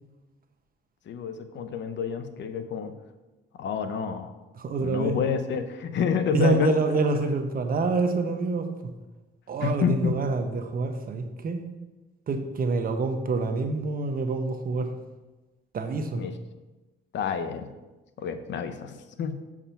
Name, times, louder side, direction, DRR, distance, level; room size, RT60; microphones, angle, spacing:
voice 1, 1.1-2.9 3.6-4.3 4.8-7.0 9.6-10.2 16.1-16.4 17.1-17.7 18.2-19.4, left 6 dB, 65° left, 9 dB, 0.7 m, -29 dB
voice 2, 4.6-5.2 6.3-8.7 9.5-11.6 12.3-14.9 15.7-16.2, right 3 dB, 45° right, 6 dB, 0.9 m, -26 dB
7.0 x 4.9 x 5.7 m, 1.1 s
cardioid pair, 90°, 20 cm